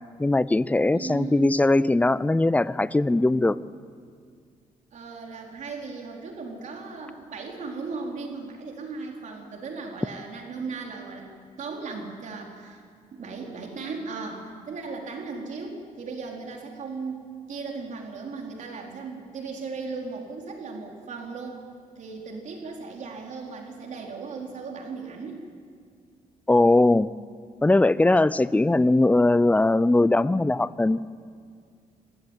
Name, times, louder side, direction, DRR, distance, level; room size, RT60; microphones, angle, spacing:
voice 1, 0.2-3.6 26.5-27.1 27.6-31.0, left 2 dB, 10° left, 17 dB, 0.6 m, -20 dB
voice 2, 0.9-1.5 4.9-11.2 11.6-12.8 13.1-21.6 22.0-25.4, right 4 dB, 55° right, 0 dB, 4.3 m, -37 dB
24.5 x 16.0 x 9.2 m, 2.2 s
cardioid pair, 105°, 15 cm